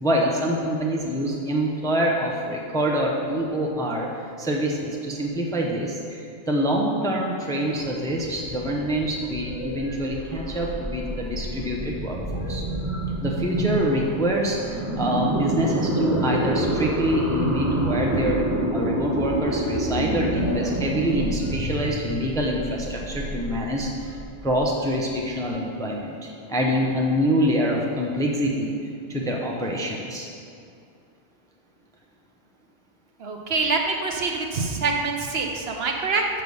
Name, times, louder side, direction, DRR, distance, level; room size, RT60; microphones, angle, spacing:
voice 1, 0.0-12.2 12.5-12.6 13.2-18.4 18.7-28.7 29.1-30.3, equal, 5° left, -1 dB, 0.6 m, -25 dB
sound 1, 7.6-25.4, right 1 dB, 15° right, 1.0 m, -28 dB
voice 2, 33.2-36.3, right 4 dB, 65° right, 2 dB, 0.9 m, -25 dB
6.6 x 6.0 x 5.4 m, 2.5 s
omnidirectional pair, 1.2 m